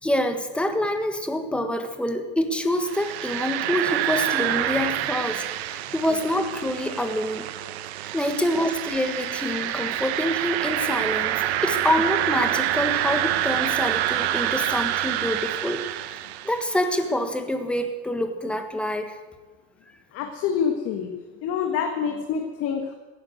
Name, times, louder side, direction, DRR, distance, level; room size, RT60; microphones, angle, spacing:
voice 1, 0.0-7.5 8.1-19.2, left 1 dB, 5° left, 6 dB, 1.5 m, -26 dB
sound 1, 2.8-16.8, right 13 dB, 80° right, 1.0 m, -27 dB
voice 2, 20.1-21.1 21.4-22.9, left 7 dB, 45° left, 3 dB, 1.7 m, -26 dB
16.0 x 10.0 x 8.1 m, 1.3 s
supercardioid pair, 130°, 31 cm